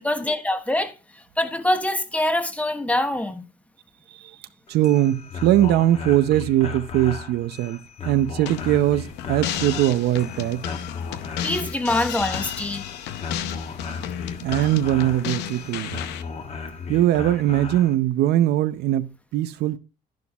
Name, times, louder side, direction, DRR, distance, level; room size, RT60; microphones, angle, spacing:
voice 1, 0.0-3.4 11.4-12.9, left 1 dB, 10° left, 1.1 m, -25 dB
sound 1, 4.7-18.0, left 4 dB, 40° left, 1.4 m, -36 dB
voice 2, 4.7-7.8 8.0-10.7 14.4-16.0 16.9-19.8, right 13 dB, 75° right, 0.7 m, -21 dB
sound 2, 8.5-16.2, left 10 dB, 85° left, 0.8 m, -33 dB
11.0 x 10.5 x 2.4 m
cardioid pair, 110°, 17 cm